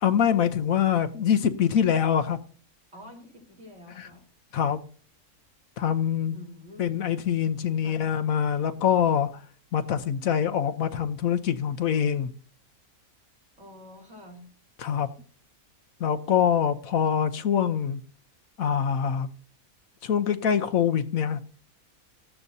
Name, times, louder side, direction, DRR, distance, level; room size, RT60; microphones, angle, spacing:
voice 1, 0.0-2.4 4.0-4.1 4.5-4.8 5.8-6.4 6.8-9.4 9.7-12.3 14.8-15.1 16.0-18.0 18.6-19.3 20.0-21.4, left 8 dB, 70° left, 1.2 m, -24 dB
voice 2, 2.9-4.3 6.2-7.0 7.8-8.1 13.6-14.4, left 1 dB, 55° right, 4.3 m, -47 dB
17.0 x 14.0 x 2.7 m
omnidirectional pair, 1.5 m